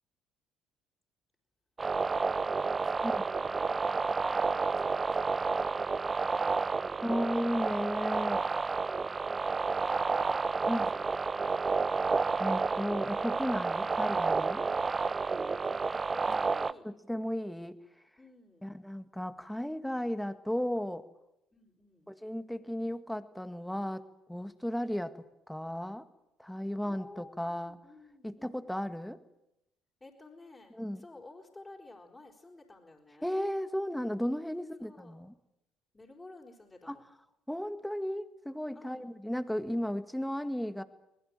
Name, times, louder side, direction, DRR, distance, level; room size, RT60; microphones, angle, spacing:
sound 1, 1.8-16.7, right 4 dB, 30° right, 0.8 m, -30 dB
voice 1, 2.2-7.5 8.5-11.1 15.3-16.9 18.2-18.7 21.5-22.1 26.8-28.7 30.0-33.3 34.6-35.2 35.9-37.0 38.7-39.2, left 2 dB, 20° left, -1 dB, 4.9 m, -54 dB
voice 2, 7.0-8.4 10.7-10.9 12.4-14.7 16.8-17.8 18.6-21.0 22.1-24.0 24.3-26.1 26.4-27.8 28.2-29.2 30.7-31.0 33.2-35.3 36.9-37.0 37.5-40.8, equal, 5° left, 11 dB, 2.0 m, -34 dB
23.0 x 21.0 x 9.1 m, 0.87 s
hypercardioid pair, 55°, 0 cm